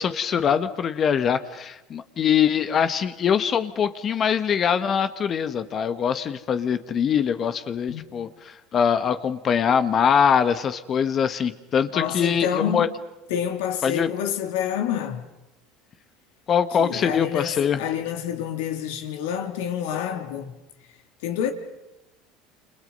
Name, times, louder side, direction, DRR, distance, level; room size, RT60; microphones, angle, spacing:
voice 1, 0.0-12.9 13.8-14.1 16.5-17.8, left 7 dB, 35° left, 1.4 m, -23 dB
voice 2, 11.9-12.9 13.3-15.3 16.8-20.5 21.2-21.5, left 9 dB, 85° left, 3.1 m, -28 dB
29.0 x 27.0 x 5.5 m
supercardioid pair, 115°, 0 cm